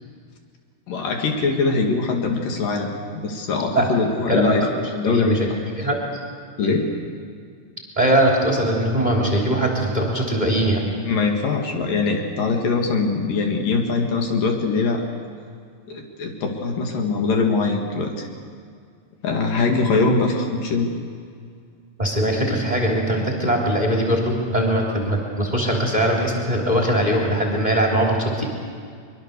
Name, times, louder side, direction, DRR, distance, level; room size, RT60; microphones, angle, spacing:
voice 1, 0.9-5.5 6.6-6.9 11.1-15.0 15.9-18.3 19.2-20.9, left 4 dB, 70° left, 2 dB, 3.6 m, -22 dB
voice 2, 4.3-4.7 5.0-5.5 5.8-6.0 6.6-6.8 7.9-10.9 22.0-28.5, right 1 dB, 10° right, -1 dB, 2.9 m, -21 dB
23.5 x 23.5 x 6.7 m, 2.1 s
omnidirectional pair, 4.2 m